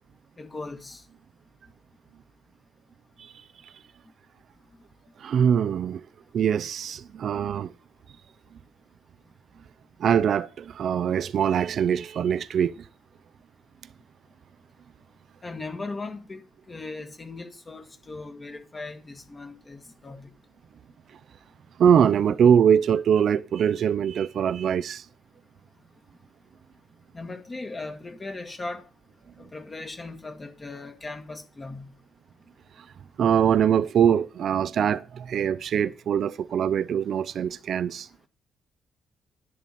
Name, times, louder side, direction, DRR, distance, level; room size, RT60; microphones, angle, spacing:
voice 1, 0.4-1.0 15.4-16.4 16.7-20.3 27.1-28.8 29.4-31.9 35.4-35.5, left 3 dB, 30° left, 1.8 m, -38 dB
voice 2, 5.2-6.0 6.3-7.7 10.0-12.8 21.8-25.0 33.2-38.1, right 8 dB, 65° right, 0.6 m, -22 dB
10.5 x 9.6 x 4.3 m
cardioid pair, 90°, 0 cm